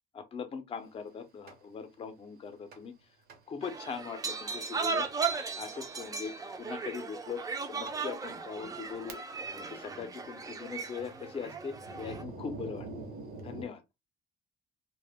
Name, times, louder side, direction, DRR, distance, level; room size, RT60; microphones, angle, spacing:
voice 1, 0.1-2.9 3.5-5.1 5.5-9.2 9.5-12.9 13.4-13.8, left 6 dB, 35° left, 0.5 m, -41 dB
Thunder, 1.5-1.6 2.7-3.0 3.3-3.4 4.0-4.1 5.0-5.3 5.7-5.9 6.8-6.9 7.5-7.6 7.9-8.0 8.6-9.5 9.8-13.6, right 2 dB, 65° right, 0.8 m, -46 dB
sound 1, 3.6-12.2, right 5 dB, 20° right, 0.4 m, -37 dB
2.1 x 2.0 x 3.4 m
cardioid pair, 110°, 17 cm